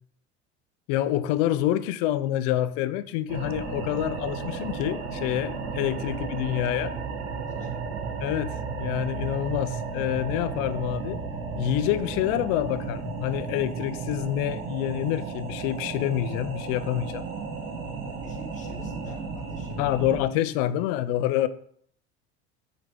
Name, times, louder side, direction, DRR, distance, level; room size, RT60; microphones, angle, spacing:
voice 1, 0.9-7.0 8.2-11.2 11.5-17.3 19.8-21.5, left 12 dB, 60° left, 0.6 m, -27 dB
sound 1, 3.3-20.2, right 5 dB, 70° right, 1.4 m, -34 dB
voice 2, 7.4-7.8 18.1-19.8, left 2 dB, 20° left, 2.1 m, -49 dB
7.5 x 4.2 x 3.7 m
hypercardioid pair, 70°, 33 cm